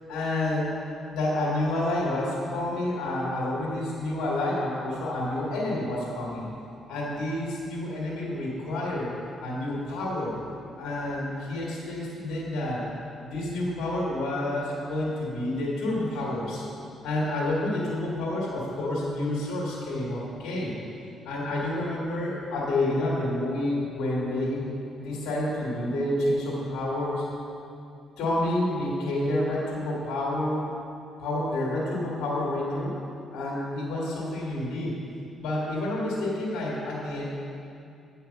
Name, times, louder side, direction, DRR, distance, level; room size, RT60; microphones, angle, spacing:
voice 1, 0.1-0.7 1.1-6.4 6.9-9.1 9.4-10.3 10.8-12.8 13.2-16.6 17.0-20.7 21.2-24.6 25.0-27.3 28.2-30.7 31.2-32.9 33.3-35.0 35.4-37.2, left 1 dB, 90° left, -5 dB, 2.2 m, -29 dB
8.9 x 5.8 x 5.9 m, 2.5 s
cardioid pair, 90°, 0 cm